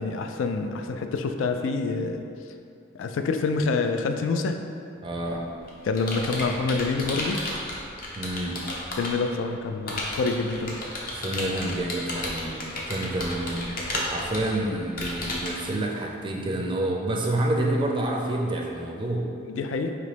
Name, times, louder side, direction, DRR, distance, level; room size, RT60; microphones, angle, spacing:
voice 1, 0.0-2.2 2.9-4.6 5.8-7.4 9.0-10.8 19.4-20.0, left 4 dB, 75° left, 6 dB, 0.3 m, -27 dB
voice 2, 5.0-5.4 8.2-8.6 11.1-13.6 14.1-19.2, right 1 dB, 25° right, -1 dB, 0.4 m, -28 dB
Computer keyboard, 5.2-9.3 9.9-15.6, left 1 dB, 45° left, 0.7 m, -33 dB
5.1 x 2.9 x 3.3 m, 2.6 s
head